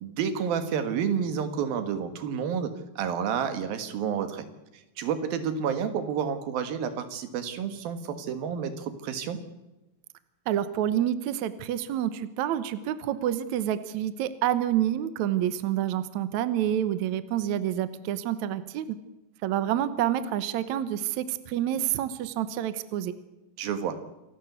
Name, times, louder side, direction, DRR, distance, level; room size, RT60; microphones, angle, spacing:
voice 1, 0.0-4.5 5.0-9.4 23.6-24.0, right 7 dB, 85° right, 9 dB, 3.5 m, -30 dB
voice 2, 10.5-19.0 19.4-23.1, right 11 dB, 65° right, 13 dB, 2.1 m, -28 dB
27.0 x 12.0 x 8.2 m, 0.99 s
omnidirectional pair, 4.1 m